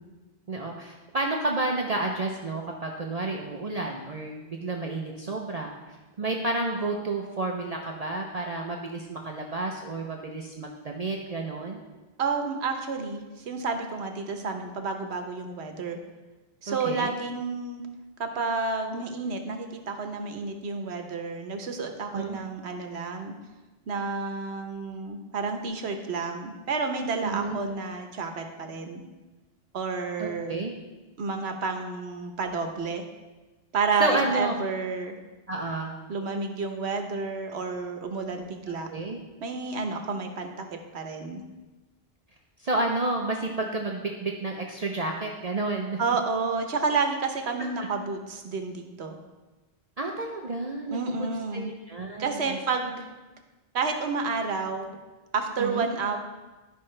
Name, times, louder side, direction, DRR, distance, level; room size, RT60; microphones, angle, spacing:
voice 1, 0.5-5.7 6.2-11.8 16.7-17.1 22.1-22.4 27.2-27.6 30.2-30.7 34.0-34.6 35.5-35.9 38.9-39.2 42.6-46.0 47.6-47.7 50.0-51.3 51.5-52.6 55.6-55.9, right 2 dB, 40° right, 0 dB, 0.7 m, -30 dB
voice 2, 12.2-16.0 16.6-17.8 18.2-23.3 23.9-29.0 29.7-30.6 31.2-33.0 33.7-35.2 36.1-38.9 39.4-41.4 46.0-49.2 50.9-51.7 52.2-53.1 53.7-54.8 55.3-56.2, right 4 dB, 85° right, 5 dB, 1.2 m, -30 dB
12.0 x 5.6 x 3.2 m, 1.2 s
omnidirectional pair, 1.1 m